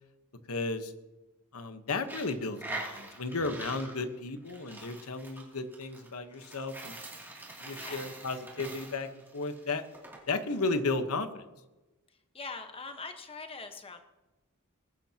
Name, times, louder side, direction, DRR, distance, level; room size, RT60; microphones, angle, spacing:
voice 1, 0.5-0.9 1.5-7.0 7.6-9.8 10.3-11.4, left 3 dB, 80° left, 8 dB, 1.2 m, -34 dB
Coin (dropping), 2.0-10.2, right 2 dB, 10° right, 2.7 m, -44 dB
voice 2, 12.3-14.0, left 4 dB, 25° left, 6 dB, 1.2 m, -42 dB
21.0 x 12.0 x 2.9 m, 1.1 s
head